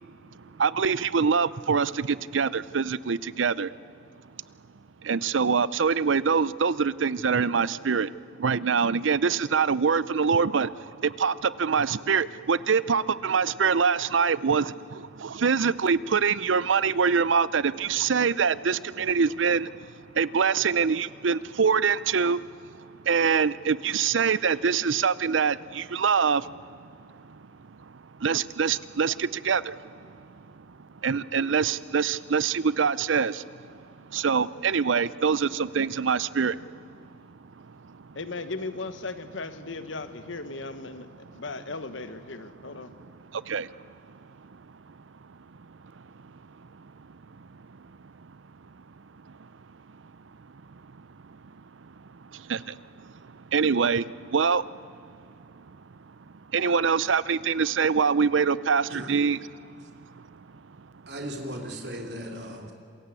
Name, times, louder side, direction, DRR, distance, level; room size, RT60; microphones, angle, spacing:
voice 1, 0.3-3.7 5.0-8.1 8.4-38.2 41.2-41.4 42.9-45.4 47.1-47.6 48.2-48.4 48.7-49.5 49.9-50.1 50.7-55.8 56.1-56.2 56.5-60.9, right 5 dB, 85° right, 0.6 m, -26 dB
voice 2, 38.1-42.9, left 3 dB, 90° left, 1.4 m, -37 dB
voice 3, 61.1-62.7, equal, 60° right, 3.3 m, -37 dB
27.0 x 22.0 x 8.4 m
head